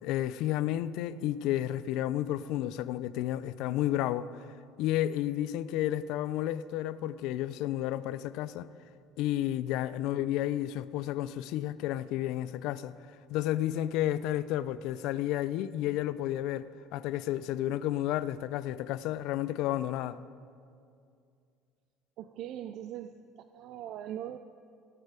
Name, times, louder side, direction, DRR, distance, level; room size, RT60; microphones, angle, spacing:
voice 1, 0.0-4.3 4.8-8.7 9.2-12.9 13.3-20.2, left 13 dB, 65° left, 0.3 m, -31 dB
voice 2, 22.2-23.2 23.5-24.4, right 11 dB, 50° right, 0.3 m, -40 dB
17.5 x 6.7 x 4.9 m
cardioid pair, 160°, 0 cm